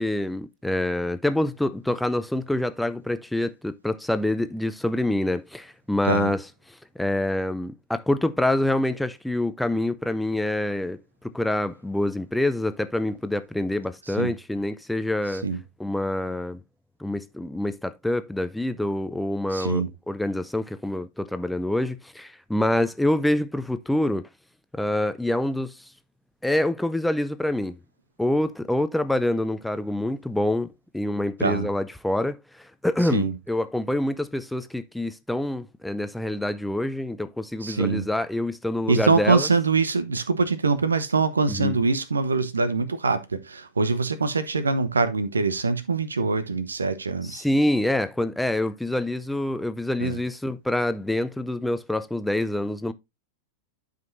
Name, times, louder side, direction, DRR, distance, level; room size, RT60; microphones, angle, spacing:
voice 1, 0.0-6.4 7.0-15.4 15.8-16.6 17.0-24.2 24.7-25.9 26.4-27.8 28.2-30.7 30.9-39.5 41.5-41.8 47.2-52.9, left 1 dB, 5° left, 0.6 m, -26 dB
voice 2, 19.5-19.9 31.4-31.7 33.1-33.3 37.6-38.1 38.9-47.4 50.0-50.2, right 4 dB, 75° right, 0.9 m, -23 dB
12.0 x 5.2 x 2.6 m
figure-of-eight pair, 90°, 0 cm